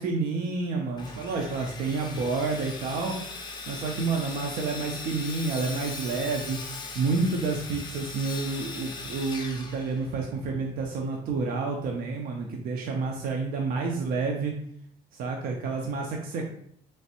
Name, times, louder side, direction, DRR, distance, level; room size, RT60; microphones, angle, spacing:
voice 1, 0.0-3.2 3.7-14.5 15.1-16.5, right 4 dB, 60° right, 1 dB, 0.5 m, -29 dB
Sawing, 1.0-10.4, left 3 dB, 25° left, 0.5 m, -39 dB
3.1 x 2.5 x 2.8 m, 0.68 s
cardioid pair, 110°, 17 cm